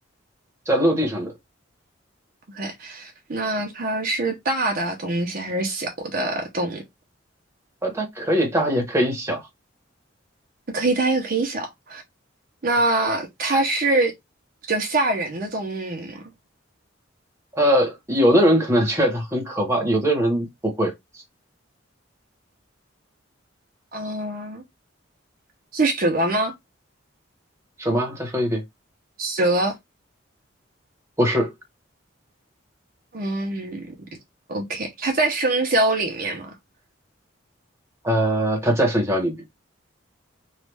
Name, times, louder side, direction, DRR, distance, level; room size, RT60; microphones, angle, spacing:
voice 1, 0.7-1.3 7.8-9.4 17.6-20.9 27.8-28.6 31.2-31.5 38.0-39.4, equal, 15° right, 1.0 m, -21 dB
voice 2, 2.5-6.8 10.7-12.0 12.6-14.1 14.7-16.2 23.9-24.6 25.7-26.5 29.2-29.8 33.1-33.9 34.5-36.5, right 2 dB, 45° right, 0.7 m, -24 dB
3.1 x 2.4 x 3.4 m
head